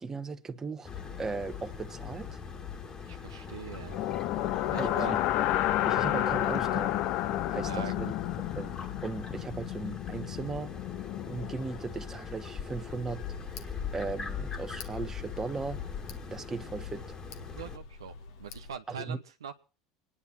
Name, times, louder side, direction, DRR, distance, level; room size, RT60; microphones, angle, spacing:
voice 1, 0.0-0.9 1.2-2.4 4.7-5.2 5.8-7.0 7.5-8.1 8.4-8.7 9.0-10.7 11.2-15.8 16.3-17.2 18.9-19.2, right 4 dB, 20° right, 1.3 m, -37 dB
sound 1, 0.8-17.8, left 6 dB, 35° left, 2.0 m, -41 dB
voice 2, 3.0-4.0 4.7-5.2 7.6-7.9 17.5-19.5, right 8 dB, 90° right, 1.0 m, -42 dB
sound 2, 3.9-11.9, left 14 dB, 60° left, 0.6 m, -31 dB
Tick, 12.7-18.8, left 4 dB, 75° left, 1.5 m, -48 dB
26.0 x 10.0 x 4.3 m
hypercardioid pair, 80°, 2 cm